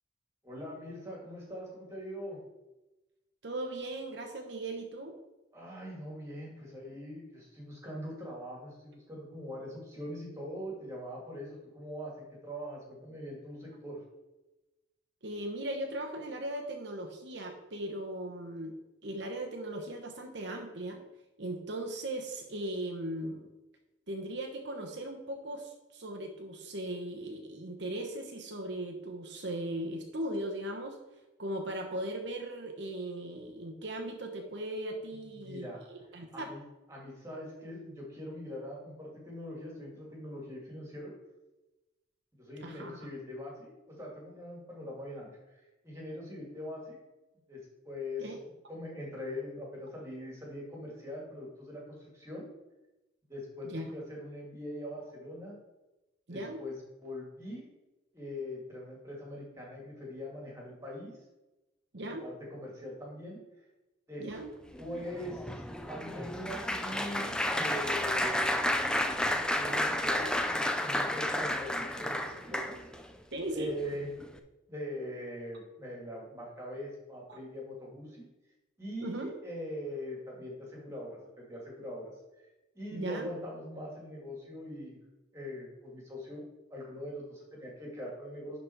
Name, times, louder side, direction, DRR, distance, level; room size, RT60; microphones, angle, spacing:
voice 1, 0.4-2.4 5.5-14.0 35.3-35.8 36.3-36.6 36.9-41.1 42.4-43.7 44.0-47.0 47.5-48.3 48.7-52.5 53.3-55.6 56.3-57.7 58.1-61.2 61.9-63.4 64.1-64.3 64.8-65.5 65.9-67.3 67.5-68.5 68.8-72.8 73.5-74.1 74.7-78.2 78.8-82.1 82.7-85.0 85.3-86.4 86.7-88.6, left 1 dB, 15° right, -3 dB, 2.4 m, -42 dB
voice 2, 3.4-5.1 15.2-18.8 19.0-21.0 21.4-23.5 24.1-31.0 31.4-36.5 42.6-43.0 48.2-48.4 53.6-53.9 56.3-56.6 61.9-62.3 64.2-64.5 73.3-73.8 77.3-77.4 79.0-79.3 82.9-83.3, right 1 dB, 60° right, 2 dB, 1.0 m, -38 dB
Applause, 64.7-73.0 73.7-73.9 74.2-74.4, left 1 dB, 5° left, 0.4 m, -31 dB
11.0 x 4.2 x 4.6 m, 1.0 s
head